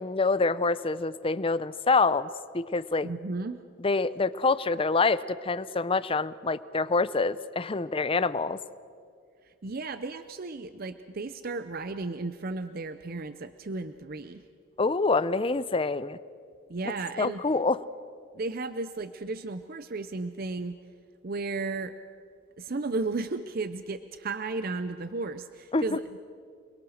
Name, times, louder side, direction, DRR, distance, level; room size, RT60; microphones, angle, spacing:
voice 1, 0.0-3.1 3.8-8.6 14.8-16.2 17.2-17.8 25.7-26.0, left 3 dB, 25° left, 15 dB, 0.6 m, -26 dB
voice 2, 3.0-3.6 9.4-14.4 16.7-17.4 18.3-20.8 21.2-21.9 22.6-26.2, right 3 dB, 45° right, 11 dB, 0.6 m, -34 dB
28.0 x 21.0 x 6.5 m, 2.3 s
head